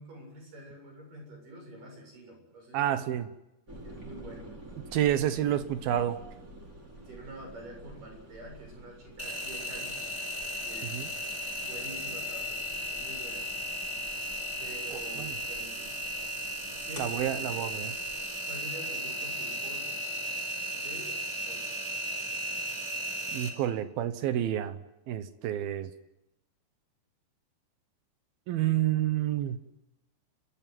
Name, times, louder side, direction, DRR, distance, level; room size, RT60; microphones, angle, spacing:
voice 1, 0.0-3.0 3.8-4.5 6.9-10.0 10.6-11.2 11.6-13.5 14.6-16.0 16.8-17.7 18.5-20.0 20.7-21.8, right 1 dB, 50° right, 1 dB, 9.2 m, -47 dB
voice 2, 2.7-3.3 4.9-6.2 10.9-11.1 14.9-15.3 17.0-17.9 23.3-24.8 25.1-25.9 28.5-29.6, right 12 dB, 70° right, 11 dB, 2.7 m, -29 dB
sound 1, 3.7-18.4, right 1 dB, 20° right, 4.9 m, -50 dB
Engine, 9.2-23.5, equal, 5° left, 3.9 m, -35 dB
30.0 x 13.5 x 9.4 m, 0.91 s
omnidirectional pair, 5.0 m